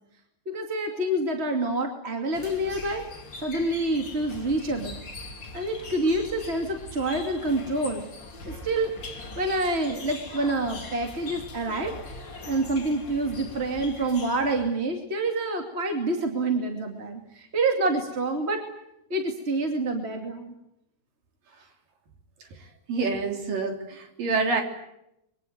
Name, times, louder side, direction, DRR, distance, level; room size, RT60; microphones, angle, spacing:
voice 1, 0.5-3.0 3.4-5.0 5.5-8.0 8.5-11.9 12.4-18.6 19.1-20.5, right 2 dB, 20° right, 4 dB, 1.9 m, -27 dB
sound 1, 2.3-14.8, left 2 dB, 30° left, 3.2 m, -41 dB
voice 2, 22.9-24.6, right 4 dB, 55° right, 4 dB, 4.7 m, -27 dB
24.0 x 24.0 x 9.3 m, 0.82 s
omnidirectional pair, 4.7 m